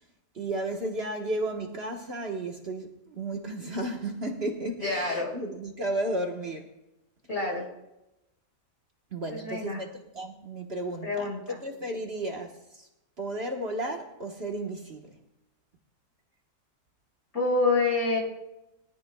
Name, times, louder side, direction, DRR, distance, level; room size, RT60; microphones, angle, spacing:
voice 1, 0.3-6.7 9.1-12.9 13.2-15.1, right 1 dB, 45° right, 1.5 m, -33 dB
voice 2, 4.8-5.3 7.3-7.7 9.3-9.8 11.0-11.6 17.3-18.2, left 3 dB, 50° left, 5.6 m, -27 dB
21.5 x 13.0 x 2.3 m
omnidirectional pair, 1.5 m